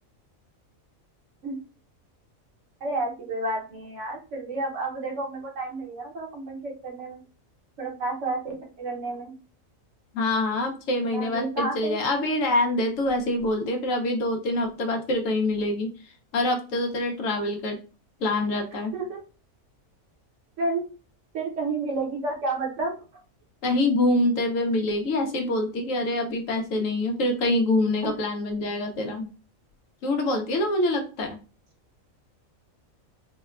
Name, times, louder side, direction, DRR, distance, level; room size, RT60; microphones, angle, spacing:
voice 1, 2.8-7.2 7.8-8.4 8.8-9.3 11.1-12.0 18.9-19.2 20.6-20.8 21.3-23.0 28.0-28.1, right 2 dB, 65° right, 1 dB, 1.1 m, -30 dB
voice 2, 10.1-15.9 16.3-17.8 18.2-18.9 23.6-29.3 30.0-31.4, left 1 dB, 75° left, 4 dB, 1.0 m, -25 dB
3.6 x 2.2 x 2.3 m, 0.35 s
omnidirectional pair, 1.4 m